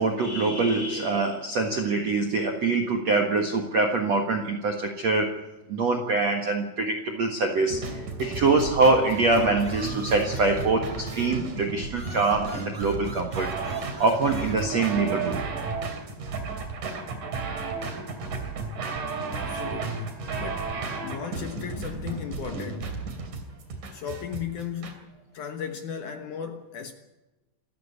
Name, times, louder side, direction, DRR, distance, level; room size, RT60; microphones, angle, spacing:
voice 1, 0.0-5.4 5.7-13.5 14.0-15.4, right 3 dB, 65° right, 1.7 m, -24 dB
sound 1, 7.7-24.9, right 4 dB, 45° right, 3.9 m, -33 dB
sound 2, 8.7-11.5 11.9-14.6, right 1 dB, 10° right, 2.3 m, -44 dB
voice 2, 19.3-23.0 23.9-26.9, left 8 dB, 75° left, 1.8 m, -36 dB
27.5 x 14.0 x 8.3 m
omnidirectional pair, 5.4 m